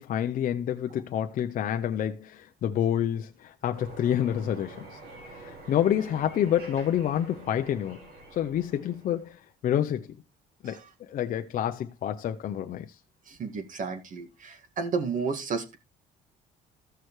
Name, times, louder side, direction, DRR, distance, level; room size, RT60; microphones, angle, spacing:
voice 1, 0.0-5.0 5.3-8.0 8.3-10.2 10.6-13.0, left 10 dB, 50° left, 0.6 m, -28 dB
sound 1, 3.7-9.4, right 2 dB, 75° right, 5.0 m, -47 dB
voice 2, 13.3-15.8, right 5 dB, 50° right, 1.9 m, -32 dB
14.5 x 6.4 x 3.1 m
cardioid pair, 110°, 17 cm